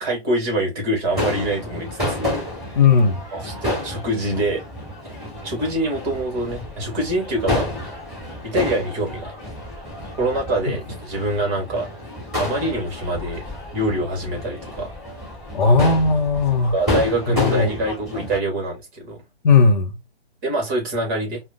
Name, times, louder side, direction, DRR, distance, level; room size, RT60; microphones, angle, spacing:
voice 1, 0.0-2.4 2.7-2.8 3.3-4.6 5.4-7.9 8.4-9.6 10.1-11.9 12.4-13.4 13.7-14.9 16.7-19.2 20.4-21.4, right 1 dB, 20° right, 1.1 m, -25 dB
Crowd / Fireworks, 1.1-18.4, left 1 dB, ahead, 2.2 m, -30 dB
voice 2, 2.8-3.2 15.5-16.7 17.4-17.7 19.4-19.9, left 4 dB, 50° left, 0.6 m, -16 dB
4.8 x 2.1 x 2.5 m
figure-of-eight pair, 135°, 31 cm